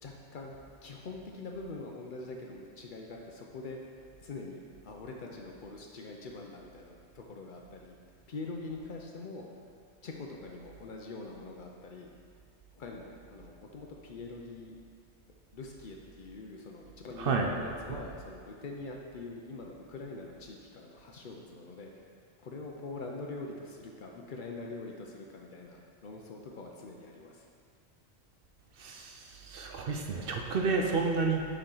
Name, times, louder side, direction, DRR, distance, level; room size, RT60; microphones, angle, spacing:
voice 1, 0.0-0.6 0.8-3.8 4.2-8.0 8.3-9.4 10.0-12.1 12.8-14.8 15.5-22.1 22.4-27.5, left 3 dB, 55° left, 0 dB, 0.7 m, -44 dB
voice 2, 28.8-31.5, right 4 dB, 60° right, 2 dB, 0.7 m, -30 dB
6.5 x 4.5 x 3.8 m, 2.2 s
omnidirectional pair, 1.1 m